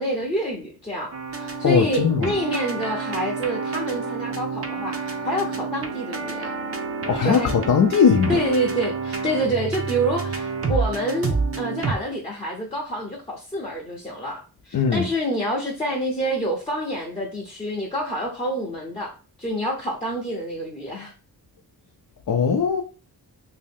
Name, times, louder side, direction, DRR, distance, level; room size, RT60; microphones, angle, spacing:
voice 1, 0.0-6.5 7.2-7.5 8.3-21.1, right 1 dB, 15° left, 0.7 m, -27 dB
sound 1, 1.1-11.9, right 4 dB, 35° right, 0.6 m, -29 dB
voice 2, 1.6-2.4 7.1-8.5 14.7-15.1 22.3-22.8, left 6 dB, 55° left, 0.5 m, -19 dB
3.1 x 2.8 x 3.5 m
wide cardioid pair, 150°, 39 cm